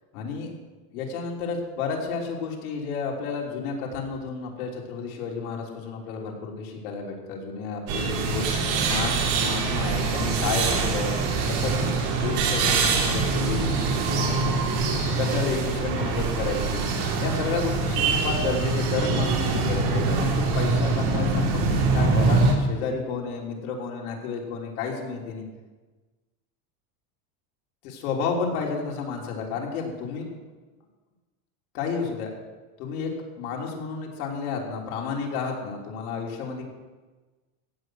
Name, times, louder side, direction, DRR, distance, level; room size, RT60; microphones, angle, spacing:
voice 1, 0.1-0.5 0.9-11.1 11.5-11.8 12.2-14.3 15.2-25.4 27.8-30.3 31.7-32.3 32.8-33.1 33.4-36.7, left 5 dB, 85° left, 0 dB, 3.4 m, -31 dB
sound 1, 7.9-22.5, right 4 dB, 65° right, 3.3 m, -24 dB
16.0 x 6.3 x 7.9 m, 1.3 s
supercardioid pair, 140°, 43 cm